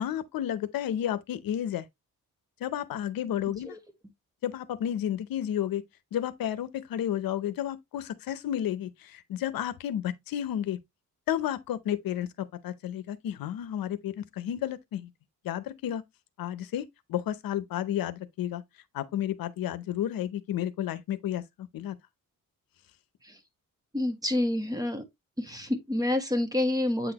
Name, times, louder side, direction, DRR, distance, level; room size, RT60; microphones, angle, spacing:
voice 1, 0.0-1.8 2.6-3.8 4.4-5.8 6.1-10.8 11.3-12.3 12.6-15.1 15.4-16.0 16.4-18.6 18.9-22.0, left 11 dB, 85° left, 0.7 m, -32 dB
voice 2, 23.9-25.0 25.4-27.1, left 1 dB, 10° right, 1.4 m, -28 dB
8.2 x 3.9 x 2.9 m
cardioid pair, 110°, 34 cm